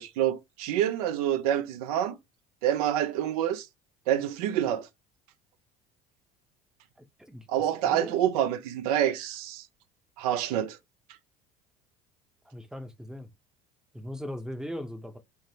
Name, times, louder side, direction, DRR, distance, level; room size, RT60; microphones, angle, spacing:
voice 1, 0.0-2.1 2.6-3.7 4.1-4.9 7.5-9.6 10.2-10.8, right 11 dB, 80° right, 0.5 m, -27 dB
voice 2, 12.5-13.3 13.9-15.2, left 1 dB, 5° right, 0.6 m, -38 dB
3.3 x 2.0 x 2.7 m
hypercardioid pair, 75°, 19 cm